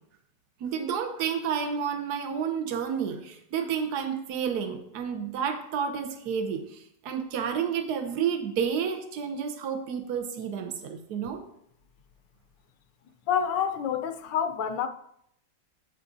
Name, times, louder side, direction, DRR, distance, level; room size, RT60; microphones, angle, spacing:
voice 1, 0.6-11.4, right 7 dB, 70° right, 1.4 m, -30 dB
voice 2, 13.3-14.9, left 8 dB, 85° left, 1.3 m, -27 dB
9.4 x 8.3 x 2.7 m
omnidirectional pair, 1.9 m